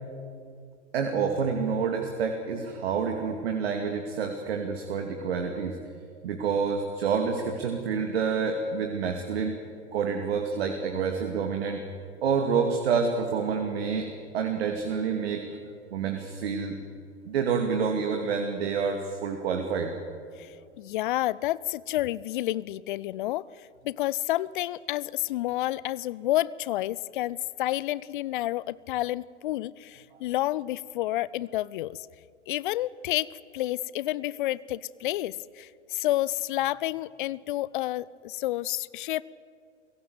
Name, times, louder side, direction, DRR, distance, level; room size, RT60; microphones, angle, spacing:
voice 1, 0.9-5.8 6.2-9.5 9.9-11.8 12.2-14.1 14.3-15.4 15.9-16.8 17.3-19.9, right 6 dB, 60° right, 4 dB, 2.5 m, -28 dB
voice 2, 20.4-32.0 32.5-33.3 33.5-39.2, left 15 dB, 45° left, 21 dB, 0.6 m, -30 dB
29.5 x 17.0 x 8.1 m, 2.3 s
figure-of-eight pair, 100°, 35 cm